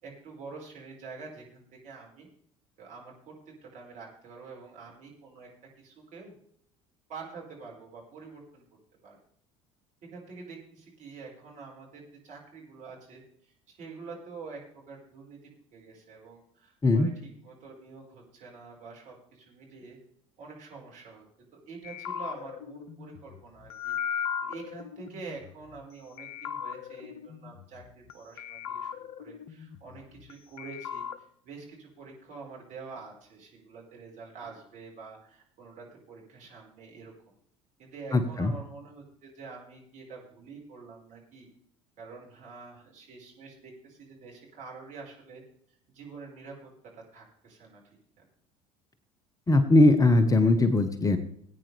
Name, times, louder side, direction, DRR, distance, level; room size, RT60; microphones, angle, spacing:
voice 1, 0.0-2.3 2.8-5.5 5.8-6.3 7.1-8.6 9.0-9.2 10.1-20.0 20.4-21.3 21.5-37.1 37.8-41.5 42.0-45.4 45.7-47.8 48.2-48.3, right 4 dB, 45° right, -2 dB, 5.0 m, -46 dB
sound 1, 21.8-25.8 26.2-28.1 28.4-30.3 30.6-31.2, left 8 dB, 60° left, 0.9 m, -37 dB
voice 2, 38.1-38.5 49.5-51.2, left 2 dB, 20° left, 10 dB, 1.2 m, -20 dB
19.0 x 9.1 x 3.4 m, 0.66 s
figure-of-eight pair, 65°, 17 cm